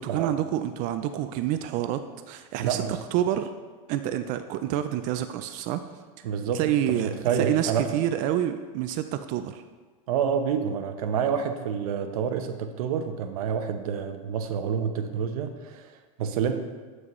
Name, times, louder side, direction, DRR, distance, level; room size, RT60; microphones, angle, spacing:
voice 1, 0.0-3.5 3.9-5.8 6.5-9.6, right 11 dB, 45° right, 9 dB, 0.4 m, -28 dB
voice 2, 2.6-3.0 6.2-6.7 7.0-8.0 10.1-16.6, right 7 dB, 80° right, 7 dB, 0.8 m, -28 dB
8.9 x 6.2 x 3.0 m, 1.4 s
supercardioid pair, 135°, 18 cm